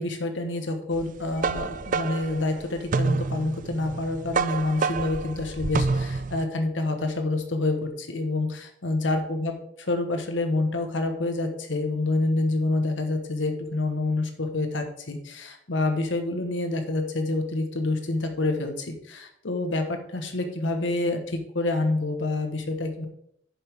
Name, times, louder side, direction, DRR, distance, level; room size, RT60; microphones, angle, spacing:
voice 1, 0.0-23.1, left 2 dB, 80° left, 6 dB, 1.3 m, -27 dB
sound 1, 1.0-6.4, right 4 dB, 45° right, 0.4 m, -28 dB
9.8 x 7.2 x 3.6 m, 0.73 s
head